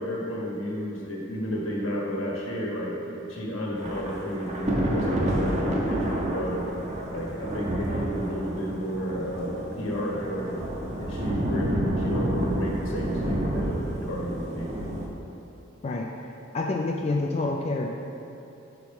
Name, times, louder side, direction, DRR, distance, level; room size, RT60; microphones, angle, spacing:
voice 1, 0.0-6.7 7.1-10.6 11.0-14.7, equal, 80° left, -3 dB, 1.4 m, -31 dB
Thunder / Rain, 3.8-15.1, right 1 dB, 35° right, 0.7 m, -30 dB
voice 2, 16.5-17.9, left 2 dB, 30° left, 0 dB, 0.3 m, -27 dB
5.8 x 4.6 x 5.3 m, 2.8 s
head